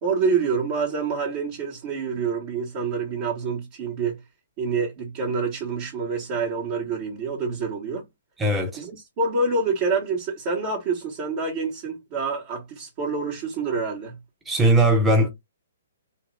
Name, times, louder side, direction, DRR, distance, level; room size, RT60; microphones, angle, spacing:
voice 1, 0.0-4.2 4.6-8.0 8.8-14.1, right 4 dB, 40° right, 1.5 m, -27 dB
voice 2, 8.4-8.8 14.5-15.3, right 1 dB, 10° right, 1.0 m, -19 dB
3.1 x 2.8 x 3.2 m
figure-of-eight pair, 130°, 0 cm